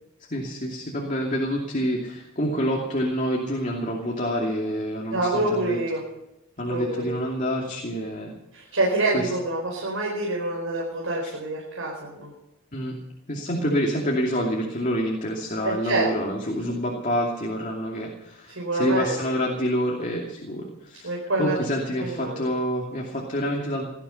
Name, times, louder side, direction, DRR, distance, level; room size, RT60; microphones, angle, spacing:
voice 1, 0.2-5.8 6.6-8.3 9.1-9.3 11.2-11.3 12.7-13.0 13.3-21.1 21.4-23.9, equal, 35° left, -1 dB, 2.6 m, -27 dB
voice 2, 5.1-6.0 6.7-7.1 8.5-12.3 15.6-16.1 16.7-16.8 18.5-19.2 21.0-21.5 22.0-22.4, right 2 dB, 70° right, -3 dB, 4.7 m, -26 dB
18.5 x 13.5 x 5.6 m, 0.92 s
head